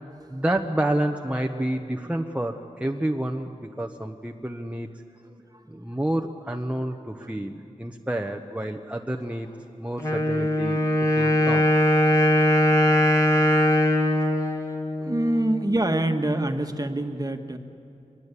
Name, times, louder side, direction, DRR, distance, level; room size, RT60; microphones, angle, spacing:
voice 1, 0.3-4.9 5.7-9.5 9.8-10.8 11.2-11.7, right 1 dB, 10° right, 2 dB, 1.1 m, -29 dB
Wind instrument woodwind instrument, 10.0-15.7, left 1 dB, 25° left, 2.7 m, -21 dB
voice 2, 11.1-11.7 14.1-14.4 15.0-17.6, right 1 dB, 30° right, 5 dB, 1.6 m, -27 dB
24.5 x 21.0 x 8.4 m, 2.6 s
wide cardioid pair, 60°, 13 cm